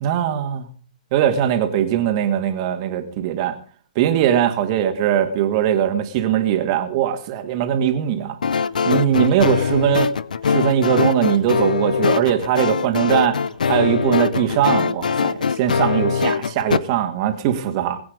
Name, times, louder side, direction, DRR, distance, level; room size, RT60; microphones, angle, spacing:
voice 1, 0.0-0.7 1.1-3.6 4.0-8.4 8.9-10.1 10.4-13.4 13.7-18.0, right 10 dB, 40° right, 7 dB, 2.1 m, -20 dB
sound 1, 8.4-16.8, left 6 dB, 90° left, 0.7 m, -22 dB
20.5 x 8.6 x 5.2 m, 0.43 s
hypercardioid pair, 145°, 4 cm